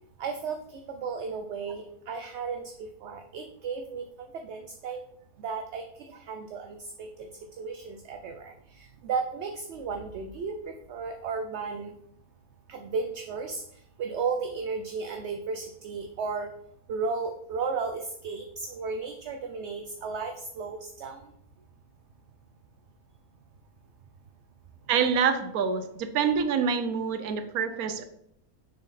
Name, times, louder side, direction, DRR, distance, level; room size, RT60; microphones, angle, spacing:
voice 1, 0.2-0.6 0.9-2.7 3.0-5.0 5.4-5.8 6.1-7.3 7.6-11.9 12.7-13.6 14.0-16.5 16.9-21.3, right 5 dB, 60° right, 5 dB, 0.8 m, -34 dB
voice 2, 24.9-28.0, right 6 dB, 90° right, 9 dB, 1.2 m, -26 dB
6.5 x 4.3 x 4.1 m, 0.73 s
omnidirectional pair, 1.5 m